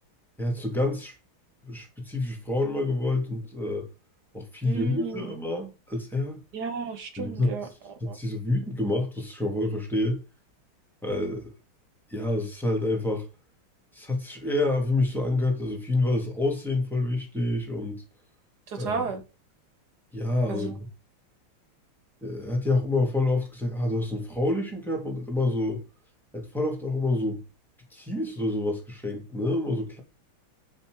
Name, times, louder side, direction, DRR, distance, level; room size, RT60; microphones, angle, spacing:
voice 1, 0.4-1.1 1.6-3.9 4.3-6.4 7.2-7.5 8.0-10.2 11.0-11.5 12.1-13.3 13.9-18.0 18.8-19.0 20.1-20.9 22.2-25.8 26.3-27.4 27.9-30.0, left 2 dB, ahead, 2.7 m, -27 dB
voice 2, 4.6-5.3 6.5-7.7 8.1-8.2 18.7-19.2 20.5-20.8, right 5 dB, 50° right, 2.2 m, -33 dB
6.7 x 5.9 x 6.5 m
omnidirectional pair, 2.3 m